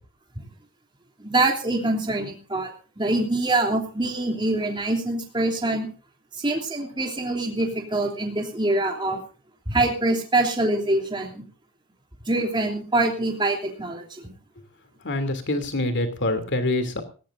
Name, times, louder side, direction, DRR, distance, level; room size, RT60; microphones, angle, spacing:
voice 1, 1.2-2.7 3.0-5.9 6.3-9.2 9.7-11.4 12.2-14.3, right 2 dB, 20° right, 1 dB, 3.1 m, -24 dB
voice 2, 15.0-17.0, left 1 dB, 55° left, 9 dB, 2.8 m, -25 dB
19.5 x 17.5 x 2.6 m, 0.37 s
head